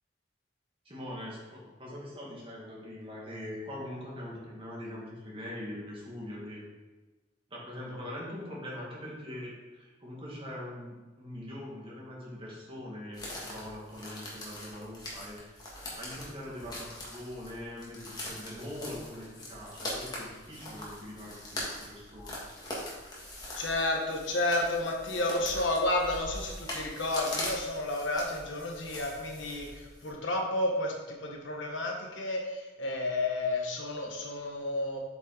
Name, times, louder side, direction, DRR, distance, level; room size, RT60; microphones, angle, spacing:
voice 1, 0.8-6.6 7.5-15.6 16.0-22.4, left 1 dB, 30° right, -4 dB, 2.1 m, -42 dB
sound 1, 13.1-30.1, left 1 dB, 20° left, 1.8 m, -42 dB
voice 2, 23.6-35.0, left 2 dB, 85° left, 1 dB, 1.3 m, -31 dB
8.0 x 5.5 x 4.0 m, 1.2 s
head